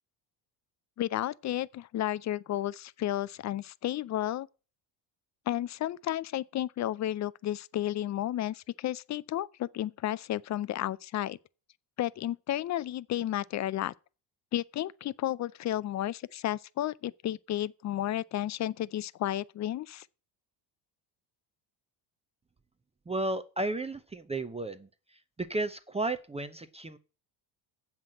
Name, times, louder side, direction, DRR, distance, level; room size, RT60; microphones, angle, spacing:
voice 1, 1.0-4.5 5.5-11.4 12.0-13.9 14.5-20.1, left 13 dB, 35° left, 0.4 m, -32 dB
voice 2, 23.1-24.9 25.4-27.0, right 2 dB, 15° right, 0.5 m, -33 dB
7.5 x 5.9 x 7.7 m
cardioid pair, 100°, 49 cm